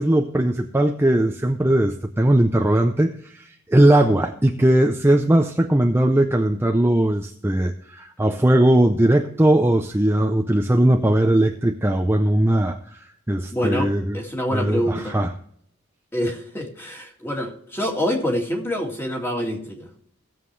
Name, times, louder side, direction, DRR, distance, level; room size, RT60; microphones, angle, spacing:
voice 1, 0.0-14.2 14.5-15.3, right 1 dB, 10° right, 5 dB, 0.5 m, -19 dB
voice 2, 13.5-15.2 16.1-19.9, equal, 10° left, 0 dB, 2.2 m, -26 dB
17.5 x 7.5 x 3.2 m, 0.65 s
head